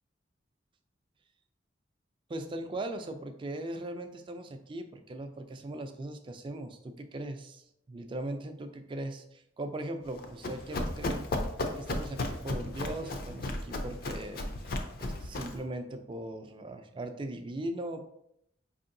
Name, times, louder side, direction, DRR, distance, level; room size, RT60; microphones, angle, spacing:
voice 1, 2.3-11.3 11.6-14.4 15.0-18.1, right 1 dB, 30° right, 7 dB, 0.3 m, -39 dB
Run, 10.1-15.6, left 2 dB, 55° left, 0.5 m, -35 dB
5.1 x 2.7 x 2.6 m, 0.76 s
head